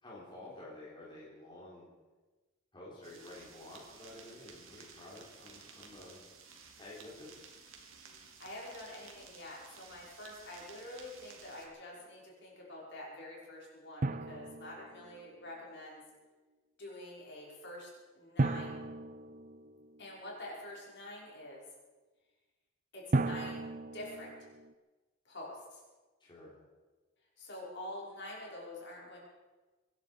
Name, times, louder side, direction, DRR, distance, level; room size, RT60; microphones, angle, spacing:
voice 1, 0.0-1.9 2.7-6.2 6.8-7.3 26.2-26.5, left 2 dB, 25° left, -6 dB, 3.8 m, -50 dB
sound 1, 3.0-11.7, right 5 dB, 90° right, 2.6 m, -55 dB
voice 2, 8.2-16.0 16.8-18.8 20.0-21.6 22.9-23.6 23.9-24.3 25.3-25.8 27.4-29.2, left 1 dB, 60° left, -4 dB, 5.7 m, -47 dB
Drum, 14.0-15.5 18.4-20.2 23.1-24.7, right 2 dB, 40° right, 0.6 m, -35 dB
24.5 x 11.0 x 5.2 m, 1.3 s
head